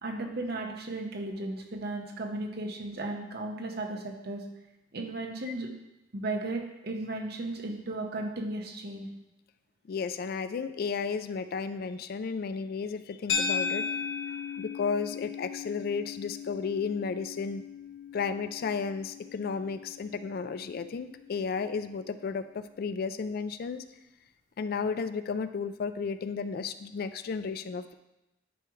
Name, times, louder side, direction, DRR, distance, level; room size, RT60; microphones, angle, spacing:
voice 1, 0.0-4.4 4.9-5.7 6.1-9.1, right 2 dB, 60° right, 2 dB, 1.0 m, -35 dB
voice 2, 9.9-13.9 14.3-17.6 18.1-23.8 24.6-27.9, left 5 dB, 55° left, 12 dB, 0.3 m, -33 dB
sound 1, 13.3-21.7, left 5 dB, 75° left, 0.8 m, -37 dB
9.9 x 4.7 x 3.1 m, 0.94 s
head